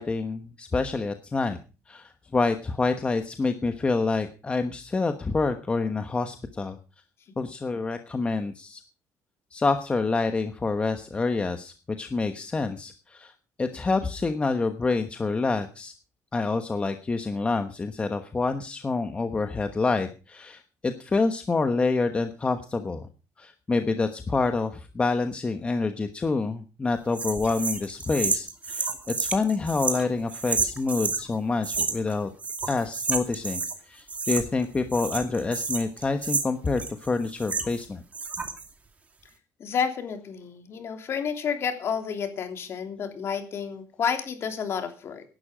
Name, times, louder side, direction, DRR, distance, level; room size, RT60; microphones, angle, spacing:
voice 1, 0.0-1.6 1.9-6.8 7.4-8.8 9.5-13.3 13.6-15.9 16.3-23.1 23.4-32.3 32.7-33.6 33.9-38.0, left 3 dB, 20° left, 7 dB, 1.1 m, -27 dB
sound 1, 27.1-31.2 31.6-32.1 32.4-33.8 34.1-34.7 34.9-37.9 38.1-38.7, right 4 dB, 25° right, 2.4 m, -30 dB
voice 2, 39.6-45.2, left 7 dB, 45° left, 6 dB, 3.2 m, -30 dB
17.5 x 11.5 x 5.1 m, 0.34 s
cardioid pair, 155°, 6 cm